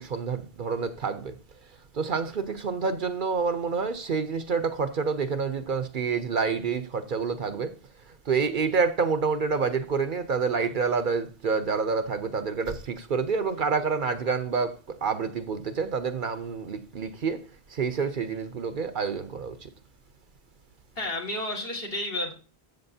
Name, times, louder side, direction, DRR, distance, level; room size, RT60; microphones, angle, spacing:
voice 1, 0.0-1.3 1.9-7.7 8.3-17.4 17.7-19.7, right 5 dB, 55° right, 0.8 m, -28 dB
voice 2, 21.0-22.3, left 1 dB, 65° left, 2.5 m, -31 dB
13.0 x 7.4 x 2.7 m
omnidirectional pair, 1.0 m